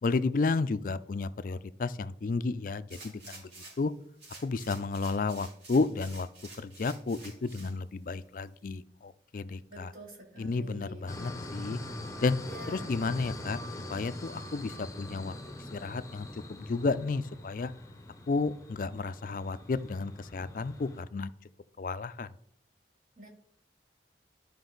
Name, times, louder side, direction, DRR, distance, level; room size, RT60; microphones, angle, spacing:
voice 1, 0.0-3.5 3.8-3.9 4.4-6.3 6.6-9.9 10.4-11.8 12.2-12.4 12.7-13.6 13.9-15.3 15.7-17.7 18.3-21.3 21.8-22.3, left 3 dB, 50° left, 14 dB, 0.4 m, -32 dB
sound 1, 2.9-3.9 4.2-7.7 8.2-8.3, right 3 dB, 75° right, 3.7 m, -50 dB
voice 2, 9.7-11.0 12.4-12.9 23.2-23.3, right 1 dB, 50° right, 0 dB, 2.3 m, -47 dB
sound 2, 11.1-21.0, left 1 dB, 20° left, 0.8 m, -43 dB
11.5 x 5.2 x 3.9 m, 0.67 s
head